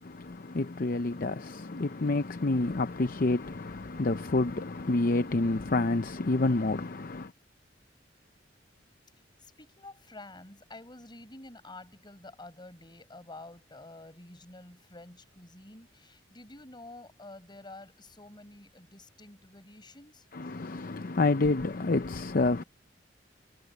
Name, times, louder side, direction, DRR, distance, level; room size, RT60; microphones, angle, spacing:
voice 1, 0.0-7.3 20.3-22.6, left 2 dB, 50° left, 0.7 m, -28 dB
voice 2, 9.4-20.3, left 2 dB, 25° left, 6.8 m, -49 dB
head